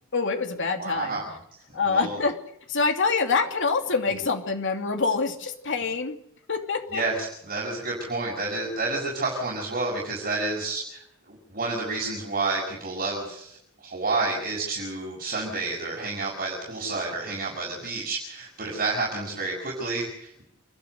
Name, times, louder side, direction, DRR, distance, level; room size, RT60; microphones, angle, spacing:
voice 1, 0.1-1.2 1.7-2.4 2.7-6.2 6.5-7.0, left 4 dB, 60° left, 5 dB, 2.7 m, -25 dB
voice 2, 0.8-1.2 1.9-2.2 6.9-7.1 7.5-13.5 13.8-20.4, right 3 dB, 40° right, -3 dB, 6.5 m, -30 dB
28.0 x 12.0 x 8.0 m, 0.74 s
head